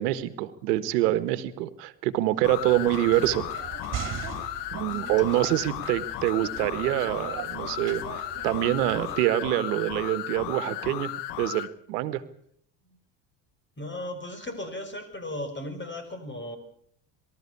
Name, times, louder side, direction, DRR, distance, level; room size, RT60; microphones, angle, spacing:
voice 1, 0.0-3.5 4.7-12.2, right 15 dB, 80° right, 13 dB, 1.5 m, -26 dB
sound 1, 2.4-11.7, left 14 dB, 60° left, 1.2 m, -35 dB
sound 2, 2.6-9.2, right 9 dB, 40° right, 3.0 m, -40 dB
voice 2, 13.8-16.6, left 1 dB, 25° left, 10 dB, 6.0 m, -36 dB
24.0 x 13.5 x 8.5 m, 0.66 s
supercardioid pair, 85°, 47 cm